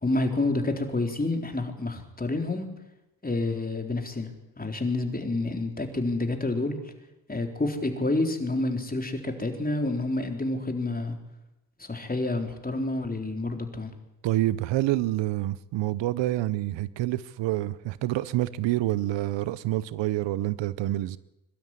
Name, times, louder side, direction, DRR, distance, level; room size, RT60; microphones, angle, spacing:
voice 1, 0.0-2.7 3.2-4.3 4.6-6.8 7.3-11.2 11.8-13.9, left 2 dB, 20° left, 3.9 m, -28 dB
voice 2, 14.2-21.2, right 15 dB, 85° right, 0.8 m, -27 dB
22.0 x 12.5 x 9.7 m
supercardioid pair, 60°, 43 cm